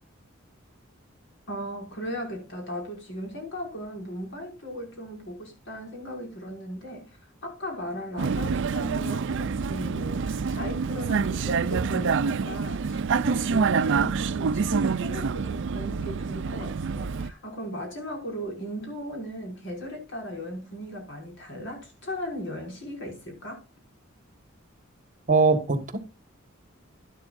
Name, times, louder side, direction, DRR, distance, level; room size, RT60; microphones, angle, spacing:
voice 1, 1.5-23.6, equal, 60° left, 5.9 m, -37 dB
Vehicle, 8.2-17.3, right 5 dB, 60° right, 0.4 m, -27 dB
voice 2, 25.3-26.0, right 4 dB, 40° right, 1.5 m, -21 dB
11.5 x 11.5 x 2.5 m
head